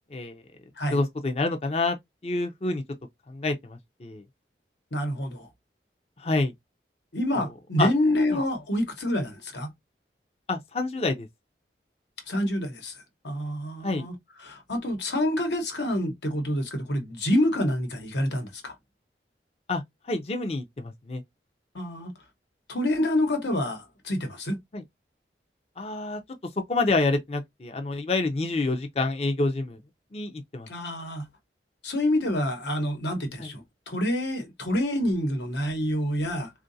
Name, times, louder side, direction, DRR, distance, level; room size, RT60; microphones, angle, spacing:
voice 1, 0.1-0.4 0.9-2.0 2.2-2.8 3.3-4.2 6.2-6.5 7.4-7.5 7.8-7.9 8.3-8.4 10.5-11.3 13.8-14.1 19.7-19.8 20.1-21.2 24.7-24.8 25.8-26.2 26.7-29.8 30.1-30.7 33.4-33.5, left 3 dB, 35° left, 0.5 m, -27 dB
voice 2, 4.9-5.5 7.1-9.7 12.3-12.9 13.2-14.1 14.4-18.7 21.7-22.1 22.7-24.6 30.7-31.3 31.8-36.5, left 1 dB, 85° left, 1.1 m, -27 dB
3.7 x 2.5 x 2.6 m
head